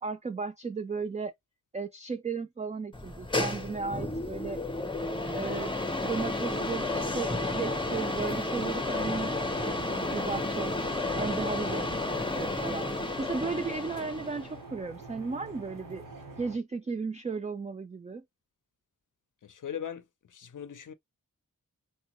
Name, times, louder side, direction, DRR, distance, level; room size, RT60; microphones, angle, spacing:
voice 1, 0.0-1.3 1.7-4.6 5.3-5.7 6.0-16.0 16.4-18.2, right 4 dB, 20° right, 0.3 m, -35 dB
sound 1, 2.9-14.6, left 2 dB, 15° left, 0.7 m, -32 dB
sound 2, 6.4-16.6, right 3 dB, 85° right, 1.0 m, -46 dB
voice 2, 19.4-20.9, left 9 dB, 70° left, 0.6 m, -40 dB
3.7 x 2.2 x 2.9 m
wide cardioid pair, 45°, 33 cm